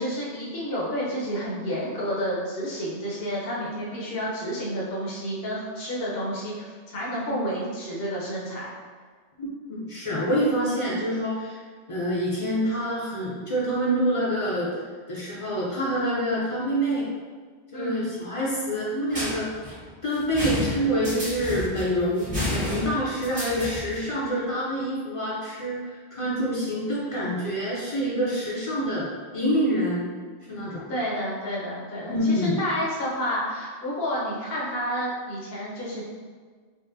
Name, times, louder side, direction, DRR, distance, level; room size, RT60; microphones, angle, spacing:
voice 1, 0.0-8.7 17.7-18.1 30.9-36.0, equal, 65° left, -6 dB, 1.0 m, -30 dB
voice 2, 9.4-11.6 11.9-14.8 15.1-17.1 17.7-19.5 20.0-30.0 30.5-30.9 32.1-32.6, equal, 40° left, -6 dB, 0.5 m, -26 dB
sound 1, 19.1-24.1, left 1 dB, 70° right, 1.5 m, -31 dB
4.1 x 2.0 x 2.6 m, 1.5 s
omnidirectional pair, 1.1 m